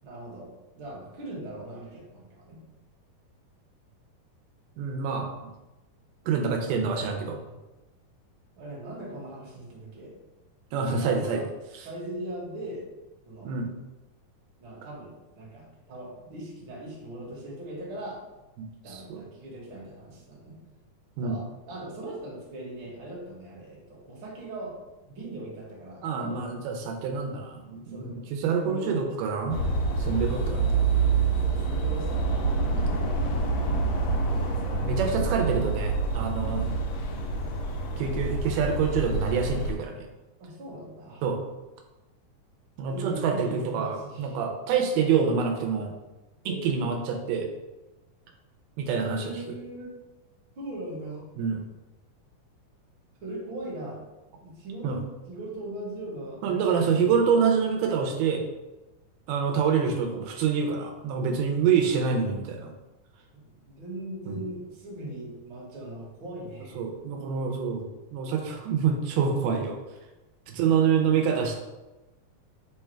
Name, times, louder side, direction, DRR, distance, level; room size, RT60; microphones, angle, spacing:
voice 1, 0.0-2.6 7.3-7.5 8.6-10.1 11.0-11.4 11.8-12.8 13.2-13.5 14.6-18.2 18.8-20.6 21.2-24.8 25.1-26.5 27.7-28.2 28.5-29.0 30.6-32.9 34.2-34.8 40.4-41.2 42.9-44.4 46.4-46.9 49.1-49.9 50.5-51.2 53.2-54.0 54.4-57.3 63.4-66.8, right 1 dB, 55° right, -4 dB, 1.5 m, -40 dB
voice 2, 4.8-5.3 6.3-7.4 10.7-11.4 13.4-13.7 18.6-19.2 21.2-21.4 26.0-29.6 30.0-30.7 32.7-33.1 34.8-36.8 38.0-40.1 41.2-41.4 42.8-45.9 46.5-47.5 48.8-49.3 51.4-51.6 54.8-55.0 56.4-58.4 59.3-62.7 64.3-64.4 66.8-67.9 68.1-69.8 70.5-71.6, right 6 dB, 85° right, 2 dB, 2.1 m, -26 dB
sound 1, 29.5-39.7, right 3 dB, 75° left, 1.6 m, -27 dB
5.0 x 2.3 x 4.3 m, 1.0 s
omnidirectional pair, 3.7 m